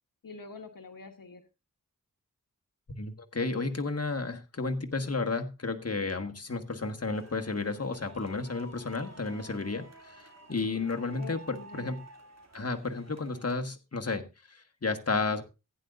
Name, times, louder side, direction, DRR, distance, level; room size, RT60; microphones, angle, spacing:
voice 1, 0.2-1.4 10.7-10.8 11.2-11.9, left 4 dB, 75° left, 6 dB, 1.2 m, -46 dB
voice 2, 2.9-12.0 12.5-15.4, left 3 dB, 45° left, 5 dB, 1.6 m, -32 dB
sound 1, 7.1-13.6, right 2 dB, 50° right, 2.8 m, -52 dB
16.0 x 9.3 x 2.5 m, 0.27 s
cardioid pair, 45°, 34 cm